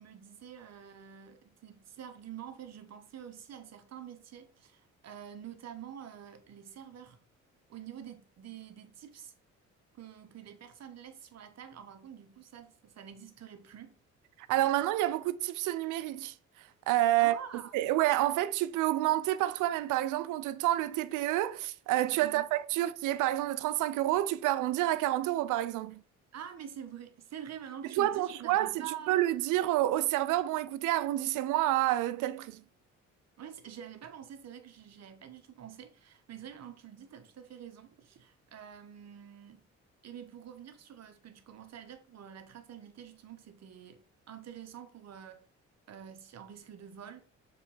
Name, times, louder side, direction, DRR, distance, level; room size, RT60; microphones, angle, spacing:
voice 1, 0.0-7.2 7.7-9.3 9.9-13.9 17.2-17.8 22.2-22.5 26.3-29.2 33.4-39.6 40.0-45.5 45.9-47.3, right 9 dB, 60° right, 1.2 m, -47 dB
voice 2, 14.5-16.3 16.9-17.4 17.7-26.0 28.0-28.7 29.1-32.6, right 14 dB, 90° right, 0.5 m, -28 dB
6.8 x 3.6 x 4.4 m
cardioid pair, 90°, 30 cm